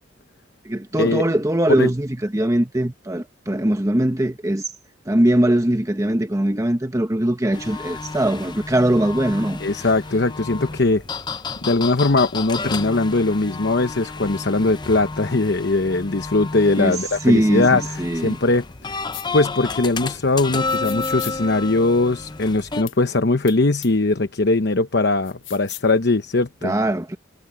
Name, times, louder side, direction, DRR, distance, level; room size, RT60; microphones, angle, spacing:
voice 1, 0.6-4.7 5.1-9.6 16.8-17.0 17.2-18.4 26.6-27.2, right 1 dB, 15° right, 1.1 m, -21 dB
sound 1, 7.5-22.8, left 4 dB, 25° left, 0.7 m, -31 dB
voice 2, 9.6-11.0 11.6-18.6 19.3-26.7, left 2 dB, 60° left, 1.0 m, -20 dB
sound 2, 9.8-13.5 13.9-14.0, right 1 dB, 60° right, 7.4 m, -52 dB
sound 3, 19.1-19.3 20.7-21.4 22.9-23.0 23.5-23.6 23.8-23.9 25.2-25.9, left 15 dB, 75° left, 1.1 m, -36 dB
head